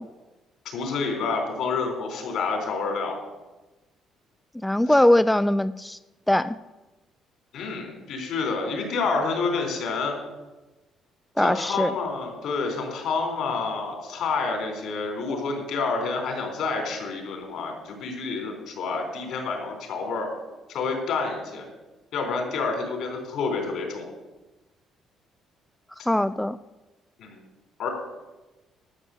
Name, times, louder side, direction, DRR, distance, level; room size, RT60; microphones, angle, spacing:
voice 1, 0.7-3.2 5.0-5.1 7.5-10.2 11.4-20.3 20.7-21.7 22.1-24.0 27.2-27.4 27.8-27.9, left 4 dB, 70° left, 2 dB, 3.9 m, -28 dB
voice 2, 4.6-6.0 6.3-6.6 11.4-11.9 26.1-26.6, left 1 dB, 5° left, 13 dB, 0.3 m, -21 dB
12.5 x 6.1 x 7.7 m, 1.1 s
cardioid pair, 100°, 0 cm